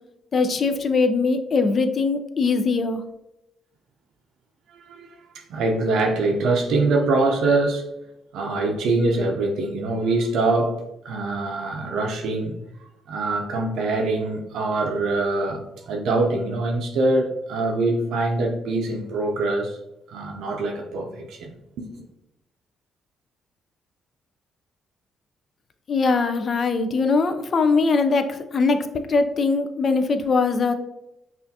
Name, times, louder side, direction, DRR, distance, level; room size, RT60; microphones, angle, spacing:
voice 1, 0.3-3.0 25.9-28.8 29.1-30.7, left 4 dB, 45° left, 8 dB, 0.4 m, -21 dB
voice 2, 4.7-5.1 5.3-7.9 8.3-12.6 13.1-19.8 20.1-22.0, right 2 dB, 80° right, 0 dB, 0.5 m, -24 dB
5.6 x 2.4 x 2.7 m, 0.89 s
cardioid pair, 90°, 0 cm